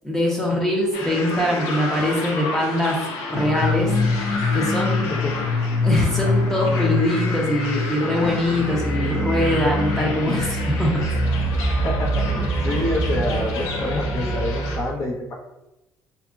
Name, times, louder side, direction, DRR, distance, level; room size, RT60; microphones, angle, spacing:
voice 1, 0.0-3.0 3.3-3.9 4.5-5.1 5.8-11.0, left 1 dB, 10° left, -2 dB, 0.7 m, -22 dB
sound 1, 0.9-14.8, left 1 dB, 75° left, 0.6 m, -24 dB
voice 2, 5.1-5.5 11.8-15.3, left 2 dB, 55° left, -3 dB, 0.9 m, -27 dB
2.7 x 2.5 x 2.4 m, 0.93 s
supercardioid pair, 90°, 6 cm